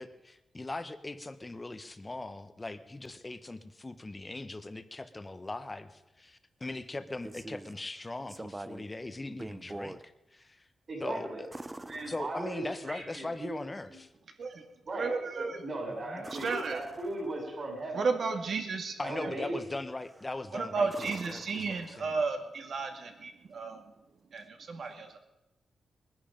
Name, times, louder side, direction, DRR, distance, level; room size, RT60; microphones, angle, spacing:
voice 1, 0.0-10.0 10.3-10.7 11.0-11.5 12.1-14.1 15.9-16.3 19.0-22.1, left 2 dB, 20° left, 11 dB, 1.0 m, -40 dB
sound 1, 7.0-7.8 8.3-8.9 9.3-10.0 11.5-12.8 16.2-17.5 20.0-20.4 20.9-22.3 24.4-24.5, right 2 dB, 15° right, 0.7 m, -45 dB
voice 2, 10.9-11.4 11.8-13.5 13.9-14.0 14.9-18.1 19.0-19.7, right 2 dB, 40° right, -8 dB, 5.4 m, -38 dB
voice 3, 15.0-15.6 16.4-16.8 17.9-18.9 19.2-19.3 20.5-23.8 24.3-25.2, right 4 dB, 60° right, 5 dB, 2.2 m, -33 dB
21.0 x 10.5 x 5.2 m, 0.93 s
cardioid pair, 110°, 0 cm